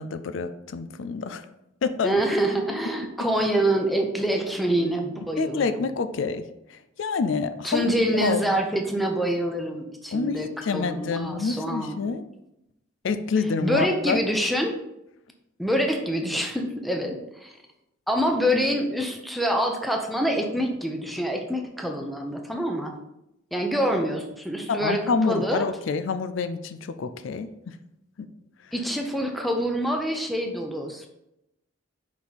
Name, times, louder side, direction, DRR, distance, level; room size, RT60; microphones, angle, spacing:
voice 1, 0.0-1.5 1.8-2.2 5.4-6.4 6.7-8.4 10.1-12.2 13.0-14.2 24.7-27.8 28.2-28.3, left 5 dB, 70° left, 10 dB, 0.4 m, -27 dB
voice 2, 2.0-5.8 7.6-10.5 10.7-12.0 13.6-14.7 15.6-17.5 18.1-22.9 23.5-25.7 28.7-31.1, equal, ahead, 2 dB, 0.7 m, -26 dB
5.2 x 4.8 x 4.1 m, 0.86 s
head